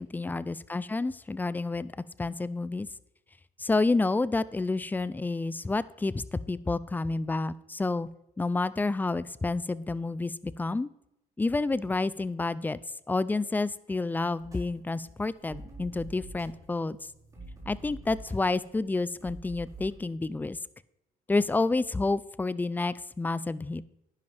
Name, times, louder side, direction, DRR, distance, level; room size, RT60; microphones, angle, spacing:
voice 1, 0.1-1.9 2.2-2.9 3.6-8.1 8.4-10.9 11.4-12.8 13.1-17.0 17.7-20.6 21.3-23.8, left 3 dB, 10° left, 18 dB, 0.4 m, -29 dB
sound 1, 14.4-19.9, right 2 dB, 20° right, 4.6 m, -47 dB
10.5 x 10.5 x 3.5 m, 0.82 s
cardioid pair, 110°, 17 cm